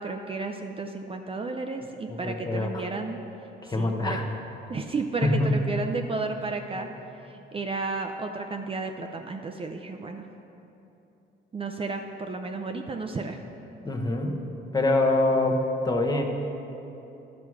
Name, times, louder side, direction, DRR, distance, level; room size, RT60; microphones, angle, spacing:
voice 1, 0.0-3.2 3.7-4.2 4.7-6.9 7.3-10.2 11.5-13.4, right 3 dB, 30° right, 4 dB, 0.5 m, -32 dB
voice 2, 2.1-2.8 3.6-4.2 5.2-5.5 13.8-14.4 14.7-16.2, left 2 dB, 20° left, 2 dB, 1.0 m, -25 dB
11.0 x 6.0 x 4.7 m, 3.0 s
cardioid pair, 90°, 20 cm